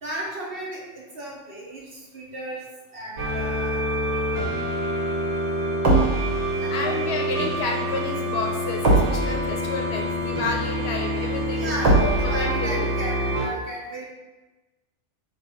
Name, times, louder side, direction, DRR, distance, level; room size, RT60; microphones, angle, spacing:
voice 1, 0.0-2.6 2.9-3.9 6.6-7.0 11.5-14.0, right 1 dB, 55° right, -4 dB, 0.9 m, -34 dB
sound 1, 3.2-13.5, right 1 dB, 70° right, 1.3 m, -24 dB
voice 2, 6.5-11.7 12.0-12.8, left 3 dB, 60° left, 1 dB, 0.9 m, -30 dB
3.1 x 3.0 x 4.6 m, 1.2 s
omnidirectional pair, 1.3 m